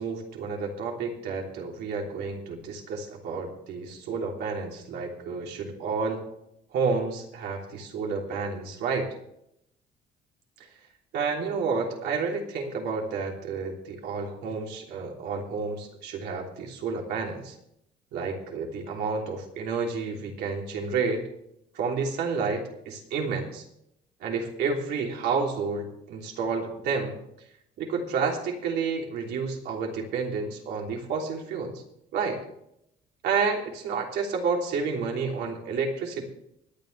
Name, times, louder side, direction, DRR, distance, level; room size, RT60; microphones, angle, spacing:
voice 1, 0.0-6.3 6.7-9.1 11.1-17.5 18.1-21.3 21.7-23.6 24.2-27.2 27.8-31.8 32.1-32.4 33.2-36.3, right 5 dB, 75° right, 0 dB, 3.3 m, -30 dB
25.0 x 9.3 x 3.4 m, 0.77 s
cardioid pair, 110°, 17 cm